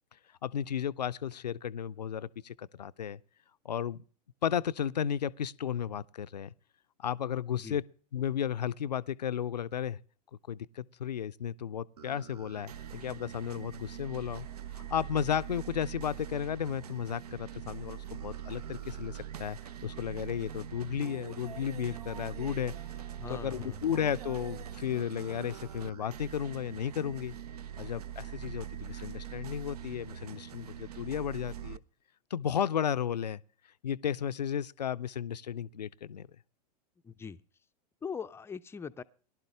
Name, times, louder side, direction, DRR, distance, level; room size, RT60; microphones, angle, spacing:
voice 1, 0.4-3.2 3.6-4.0 4.4-6.5 7.0-7.8 8.1-10.0 10.5-14.5 14.7-22.7 23.3-27.4 27.8-31.8 32.3-33.4 33.8-36.3, left 9 dB, 75° left, 0.5 m, -34 dB
sound 1, 12.0-31.8, right 10 dB, 65° right, 0.7 m, -43 dB
voice 2, 23.2-23.8 37.0-37.4 38.0-39.0, left 6 dB, 10° left, 0.5 m, -41 dB
18.0 x 11.5 x 3.3 m
figure-of-eight pair, 95°, 21 cm